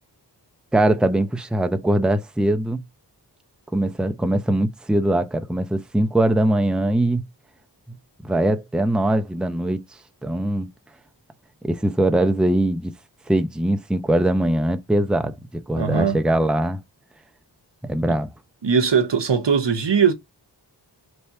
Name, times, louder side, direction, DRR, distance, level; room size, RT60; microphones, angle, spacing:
voice 1, 0.7-2.8 3.7-7.2 8.2-9.8 10.2-10.7 11.6-12.9 13.3-16.8 17.8-18.3, right 1 dB, ahead, 0.5 m, -21 dB
voice 2, 15.8-16.2 18.6-20.1, right 6 dB, 75° right, 0.8 m, -20 dB
3.3 x 2.8 x 4.6 m
wide cardioid pair, 45°, 43 cm